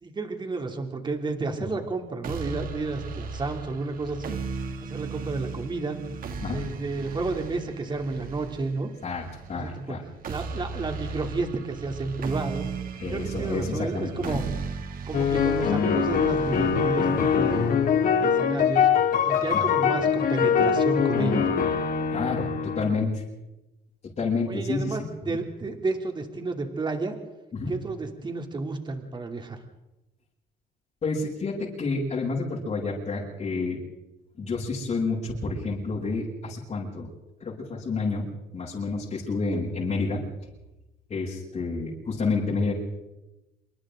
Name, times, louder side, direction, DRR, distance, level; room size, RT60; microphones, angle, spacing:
voice 1, 0.0-4.3 4.8-6.0 6.4-8.9 9.5-9.9 10.3-12.7 13.1-14.4 15.1-17.7 18.2-18.9 19.3-21.6 24.5-27.1 27.7-29.6, right 3 dB, 25° right, 4 dB, 3.0 m, -31 dB
sound 1, 2.2-18.2, right 5 dB, 55° right, 2.6 m, -37 dB
voice 2, 9.5-10.0 13.0-14.4 19.5-19.6 22.1-23.2 24.2-25.4 27.5-27.7 31.0-33.8 34.4-37.1 37.4-38.3 38.5-40.2 41.1-42.7, left 3 dB, 40° left, -7 dB, 7.6 m, -29 dB
sound 2, 15.1-22.9, left 7 dB, 55° left, 2.7 m, -23 dB
28.0 x 24.0 x 3.8 m, 0.98 s
cardioid pair, 110°, 17 cm